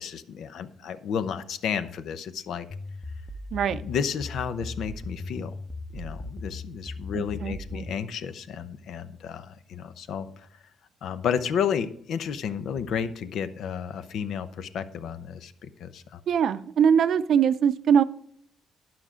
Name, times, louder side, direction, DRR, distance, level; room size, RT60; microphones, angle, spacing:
voice 1, 0.0-2.7 3.8-5.5 5.9-10.5 11.0-16.2, left 7 dB, 65° left, 12 dB, 0.8 m, -32 dB
sound 1, 2.7-8.1, left 2 dB, ahead, 0.7 m, -38 dB
voice 2, 3.5-3.8 7.1-7.9 16.3-18.0, right 7 dB, 60° right, 12 dB, 0.6 m, -22 dB
11.5 x 6.0 x 4.9 m, 0.66 s
cardioid pair, 135°, 0 cm